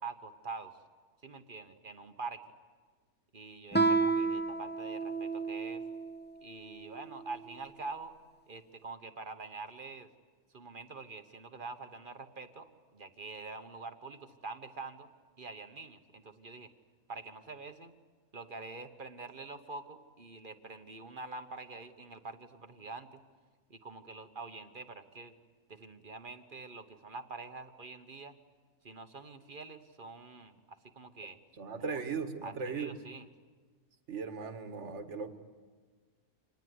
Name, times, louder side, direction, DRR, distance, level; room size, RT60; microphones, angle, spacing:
voice 1, 0.0-0.7 1.2-2.4 3.3-5.8 6.4-8.1 8.5-10.1 10.5-15.1 15.4-16.7 17.1-17.9 18.3-23.2 23.7-25.3 25.7-28.3 28.8-31.4 31.8-32.0 32.4-33.3, right 3 dB, 40° right, 8 dB, 1.3 m, -45 dB
Guitar, 3.7-6.2, right 4 dB, 10° left, 1.1 m, -30 dB
voice 2, 31.6-33.0 34.1-35.4, right 5 dB, 55° right, 7 dB, 1.9 m, -38 dB
26.0 x 20.0 x 9.5 m, 1.4 s
omnidirectional pair, 1.5 m